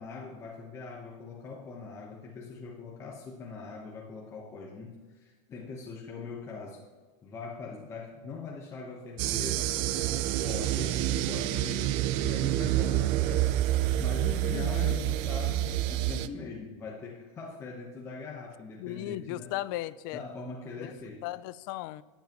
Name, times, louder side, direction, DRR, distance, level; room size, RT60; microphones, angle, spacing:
voice 1, 0.0-6.8 7.2-13.7 14.0-19.5 20.1-21.3, left 4 dB, 20° left, -2 dB, 1.1 m, -42 dB
sound 1, 9.2-16.3, right 14 dB, 35° right, 0.4 m, -28 dB
voice 2, 14.5-15.0 18.8-20.2 20.8-20.9 21.2-22.0, left 16 dB, 45° left, 16 dB, 0.4 m, -36 dB
13.0 x 9.4 x 3.0 m, 1.3 s
supercardioid pair, 165°, 15 cm